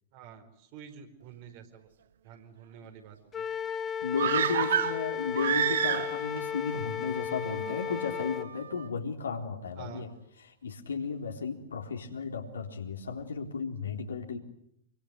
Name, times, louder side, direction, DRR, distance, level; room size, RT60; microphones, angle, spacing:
voice 1, 0.1-1.9 2.2-3.4 9.8-10.1, right 8 dB, 40° right, 7 dB, 4.8 m, -48 dB
Wind instrument woodwind instrument, 3.3-8.5, left 8 dB, 20° left, 1.1 m, -35 dB
voice 2, 4.0-10.1 10.4-14.4, left 5 dB, 70° left, 3 dB, 3.9 m, -34 dB
sound 1, 4.2-6.4 6.7-6.8, right 10 dB, 55° right, 1.1 m, -28 dB
sound 2, 4.7-9.0, right 5 dB, 70° right, 3.3 m, -52 dB
27.5 x 25.0 x 8.2 m, 0.73 s
figure-of-eight pair, 105°, 0 cm